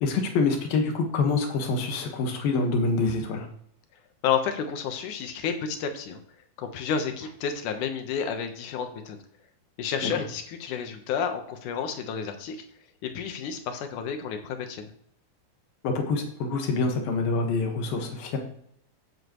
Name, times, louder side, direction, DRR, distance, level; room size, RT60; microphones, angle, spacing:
voice 1, 0.0-3.5 10.0-10.1 15.8-18.4, left 3 dB, 85° left, 3 dB, 3.4 m, -26 dB
voice 2, 4.2-6.2 6.6-9.2 9.8-12.6 13.0-14.9, left 7 dB, 70° left, 6 dB, 2.6 m, -30 dB
16.0 x 7.6 x 3.1 m, 0.69 s
omnidirectional pair, 4.0 m